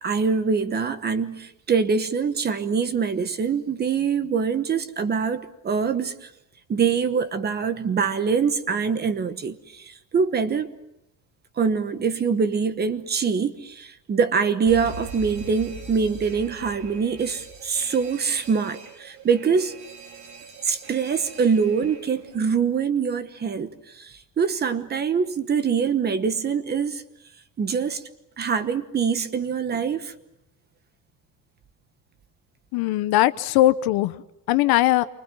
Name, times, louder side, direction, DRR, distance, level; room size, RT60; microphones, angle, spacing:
voice 1, 0.0-6.3 6.7-10.7 11.6-19.7 20.6-27.0 27.6-28.0 28.4-30.1, right 6 dB, 25° right, 10 dB, 1.2 m, -24 dB
Alarm, 14.7-22.4, right 4 dB, 80° right, 4.5 m, -42 dB
voice 2, 32.7-34.2 34.5-35.1, left 15 dB, 60° left, 13 dB, 1.1 m, -20 dB
28.5 x 24.5 x 7.7 m, 0.86 s
cardioid pair, 180°, 42 cm